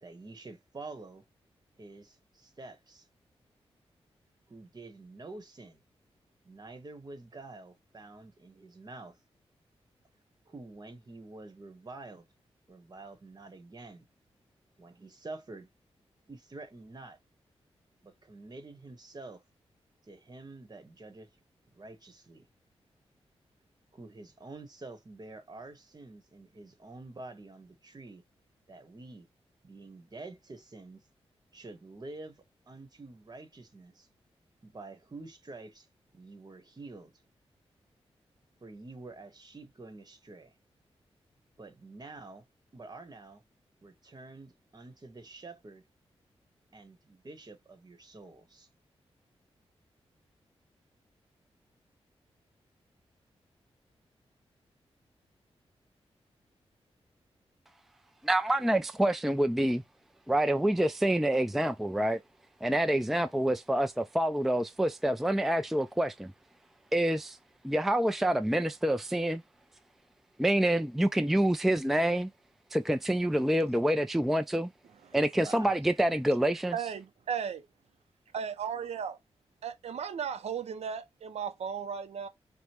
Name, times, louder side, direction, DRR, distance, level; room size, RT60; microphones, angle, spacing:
voice 1, 0.0-1.2 1.8-3.1 4.5-5.8 6.4-9.2 10.5-12.3 12.7-14.1 14.8-15.7 16.3-17.2 18.0-19.4 20.1-21.3 21.7-22.5 23.9-28.2 28.7-29.3 29.6-31.0 31.5-32.4 32.7-34.1 34.6-35.9 36.1-37.1 38.6-40.5 41.6-42.4 42.7-43.4 43.8-45.8 46.7-48.7 75.3-75.8, right 2 dB, 40° right, 1.1 m, -47 dB
voice 2, 58.2-59.8 60.3-62.2 62.6-66.3 66.9-67.4 67.6-69.4 70.4-72.3 72.7-74.7 75.1-76.7, right 1 dB, ahead, 0.4 m, -27 dB
voice 3, 76.7-77.6 78.3-79.2 79.6-82.3, right 7 dB, 75° right, 0.5 m, -35 dB
4.9 x 2.1 x 2.9 m
cardioid pair, 65°, 11 cm